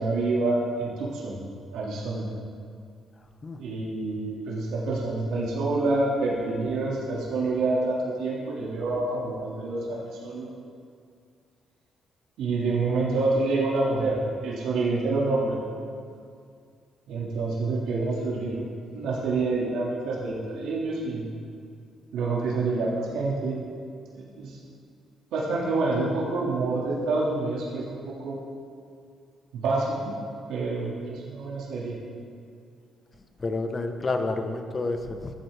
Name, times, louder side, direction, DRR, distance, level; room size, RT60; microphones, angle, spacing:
voice 1, 0.0-1.4 1.7-2.2 3.6-10.5 12.4-15.6 17.1-18.7 18.9-21.3 22.1-23.6 24.1-24.6 25.3-28.4 29.5-30.1 30.5-31.9, right 3 dB, 85° right, -5 dB, 2.1 m, -27 dB
voice 2, 33.4-35.3, left 3 dB, 35° left, 6 dB, 0.9 m, -29 dB
14.5 x 8.6 x 3.4 m, 2.3 s
cardioid pair, 90°, 0 cm